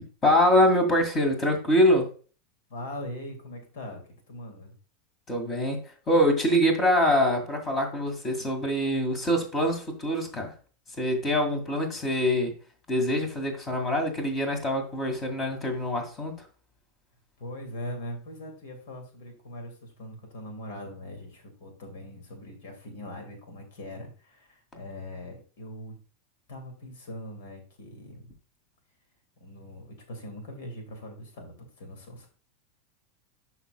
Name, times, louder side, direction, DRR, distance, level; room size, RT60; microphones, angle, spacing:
voice 1, 0.2-2.1 5.3-10.5 11.0-12.5 12.9-16.5, equal, 30° left, 5 dB, 2.1 m, -24 dB
voice 2, 2.7-4.0 4.3-4.7 17.4-26.0 26.5-28.3 29.4-32.3, left 1 dB, 60° left, 5 dB, 2.3 m, -41 dB
12.0 x 4.3 x 2.3 m, 0.38 s
figure-of-eight pair, 85°, 0 cm